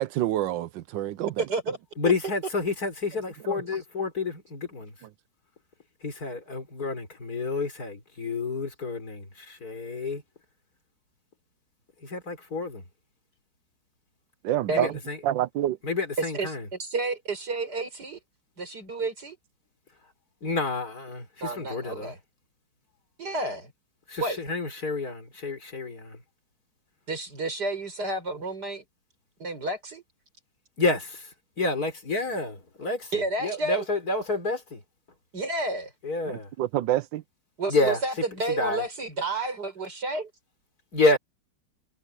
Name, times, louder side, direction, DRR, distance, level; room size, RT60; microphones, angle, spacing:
voice 1, 0.0-1.4 3.5-3.6 14.4-14.9 15.2-15.8 36.3-37.2, right 13 dB, 75° right, 1.3 m, -27 dB
voice 2, 1.4-1.8 14.7-14.9 16.2-18.2 18.6-19.4 21.4-22.2 23.2-23.7 24.2-24.4 27.1-28.8 29.4-30.0 33.1-33.8 35.3-35.9 37.6-40.3, right 2 dB, 55° right, 6.5 m, -31 dB
voice 3, 2.0-4.9 6.0-10.2 12.0-12.8 14.7-15.2 15.8-16.7 20.4-22.1 24.1-26.2 30.8-31.3 31.6-34.8 36.0-36.5 37.7-38.0 38.5-38.8 40.9-41.2, left 3 dB, 50° left, 5.0 m, -29 dB
omnidirectional pair, 2.1 m